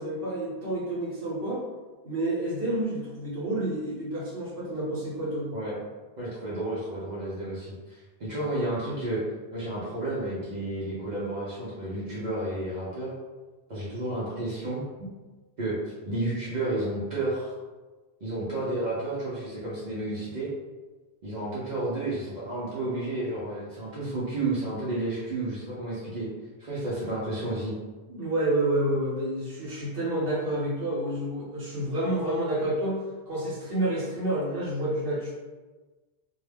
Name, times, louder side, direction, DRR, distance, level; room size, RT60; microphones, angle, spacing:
voice 1, 0.0-1.6 2.0-5.5 28.1-33.0 33.3-35.3, right 1 dB, 70° right, -8 dB, 1.0 m, -29 dB
voice 2, 6.2-9.2 9.5-13.1 13.7-14.8 15.6-15.8 16.0-17.5 18.2-20.5 21.2-26.3 26.6-27.7, right 2 dB, 50° right, -8 dB, 0.7 m, -31 dB
2.2 x 2.2 x 3.3 m, 1.3 s
omnidirectional pair, 1.0 m